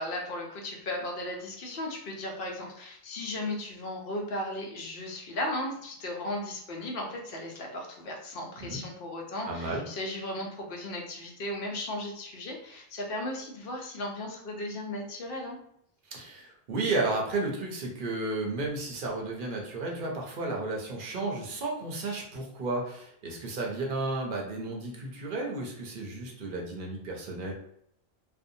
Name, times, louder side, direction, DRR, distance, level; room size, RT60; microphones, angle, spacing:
voice 1, 0.0-15.6, left 1 dB, 65° left, 0 dB, 0.8 m, -36 dB
voice 2, 9.5-9.8 16.1-27.5, right 2 dB, 60° right, -1 dB, 0.7 m, -33 dB
2.6 x 2.1 x 2.6 m, 0.72 s
omnidirectional pair, 1.0 m